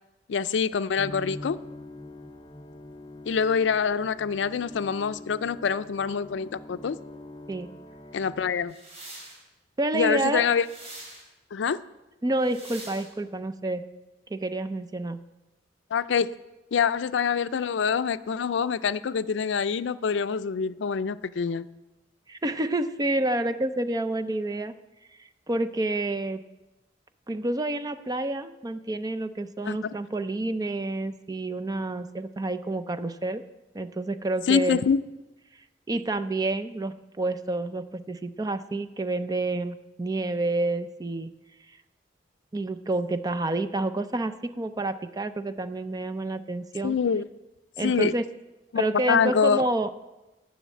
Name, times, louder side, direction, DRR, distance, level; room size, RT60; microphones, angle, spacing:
voice 1, 0.3-1.6 3.3-7.0 8.1-8.7 9.9-10.7 11.5-11.8 15.9-16.3 16.7-21.7 29.6-29.9 34.5-35.0 46.8-47.2 47.8-48.1 48.7-49.6, left 6 dB, 80° left, 15 dB, 0.4 m, -25 dB
sound 1, 1.0-8.5, left 1 dB, 25° left, 0.8 m, -44 dB
sound 2, 8.7-9.4 10.5-11.2 12.4-13.1, right 2 dB, 40° right, 3.2 m, -44 dB
voice 2, 9.8-10.5 12.2-13.8 14.3-15.2 22.3-24.7 25.2-26.4 27.3-33.4 33.7-34.8 35.9-41.3 42.5-47.0 47.8-48.3 48.8-49.9, right 2 dB, 20° right, 11 dB, 0.5 m, -29 dB
10.5 x 6.3 x 8.4 m, 1.1 s
head